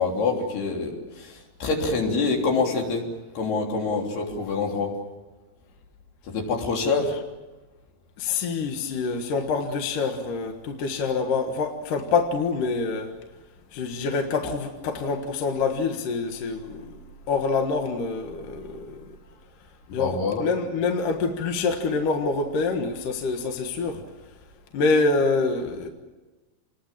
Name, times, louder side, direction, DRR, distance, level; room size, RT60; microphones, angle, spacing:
voice 1, 0.0-1.3 1.6-3.0 3.4-4.9 6.3-7.1 20.0-20.4, left 4 dB, 75° left, 5.4 m, -25 dB
voice 2, 8.2-13.2 13.7-17.0 17.3-19.0 19.9-24.0 24.7-25.9, left 4 dB, 60° left, 2.9 m, -26 dB
28.0 x 21.0 x 7.5 m
omnidirectional pair, 4.6 m